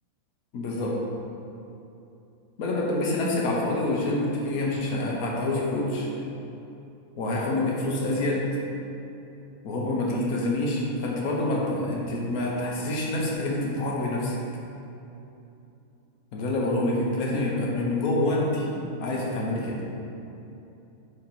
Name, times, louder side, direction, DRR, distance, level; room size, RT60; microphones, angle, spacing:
voice 1, 0.5-1.0 2.6-6.1 7.2-8.4 9.6-14.4 16.3-18.7 19.0-19.8, left 2 dB, 80° left, -3 dB, 1.4 m, -27 dB
7.0 x 3.0 x 5.3 m, 2.8 s
omnidirectional pair, 1.5 m